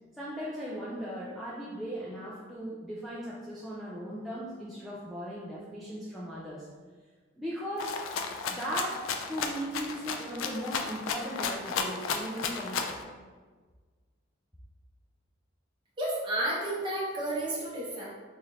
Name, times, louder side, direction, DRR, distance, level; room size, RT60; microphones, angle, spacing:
voice 1, 0.1-6.7 7.4-8.0 8.5-9.0 9.3-13.0, equal, ahead, -8 dB, 0.3 m, -38 dB
Rattle (instrument), 7.8-13.0, left 5 dB, 75° left, 0.3 m, -33 dB
voice 2, 16.0-18.1, right 1 dB, 25° right, -6 dB, 0.8 m, -31 dB
3.8 x 3.1 x 2.7 m, 1.4 s
head